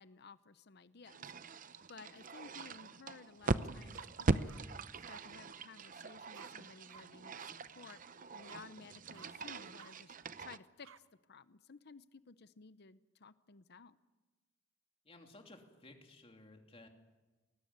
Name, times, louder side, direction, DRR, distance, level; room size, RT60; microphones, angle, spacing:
voice 1, 0.0-1.6 1.9-8.0 8.3-14.0, left 4 dB, 55° left, 14 dB, 0.8 m, -56 dB
sound 1, 1.0-10.6, right 3 dB, 45° right, 0.7 m, -40 dB
sound 2, 3.4-3.6 3.9-4.6 5.1-5.2 6.3-6.5 6.9-7.0 7.3-7.5 7.8-8.0 8.5-8.6 9.1-9.3 9.8-9.9 10.8-11.0, right 7 dB, 85° right, 0.8 m, -56 dB
voice 2, 15.0-16.9, left 2 dB, 30° left, 3 dB, 2.9 m, -57 dB
21.5 x 19.0 x 9.5 m, 1.2 s
head